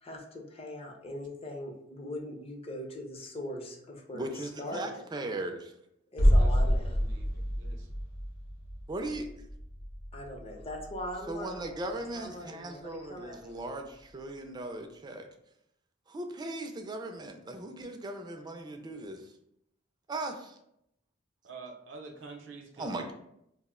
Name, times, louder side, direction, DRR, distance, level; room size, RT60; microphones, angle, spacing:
voice 1, 0.0-5.0 6.1-7.0 10.1-13.5, left 1 dB, 30° left, 0 dB, 0.5 m, -41 dB
voice 2, 4.1-5.7 8.9-9.3 11.3-15.3 16.1-19.3 20.1-20.6 22.8-23.1, right 2 dB, 20° right, 5 dB, 0.3 m, -38 dB
sound 1, 6.2-11.9 12.2-12.3, equal, 75° left, 0.6 m, -28 dB
voice 3, 6.4-7.9 21.4-23.1, right 3 dB, 80° right, 2 dB, 0.6 m, -47 dB
2.5 x 2.0 x 3.5 m, 0.78 s
head